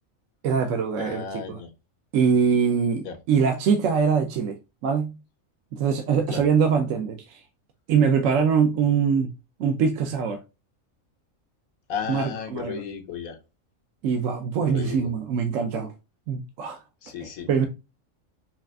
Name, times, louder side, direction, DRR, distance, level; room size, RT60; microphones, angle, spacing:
voice 1, 0.4-1.6 2.1-4.6 4.8-5.2 5.7-7.4 7.9-9.3 9.6-10.4 12.1-12.8 14.0-15.9 16.3-16.8 17.5-17.7, right 6 dB, 70° right, 1.0 m, -23 dB
voice 2, 1.0-1.7 3.0-3.1 6.3-6.5 11.9-13.4 14.7-15.1 17.0-17.7, left 7 dB, 90° left, 1.3 m, -34 dB
5.5 x 2.5 x 2.2 m
omnidirectional pair, 1.4 m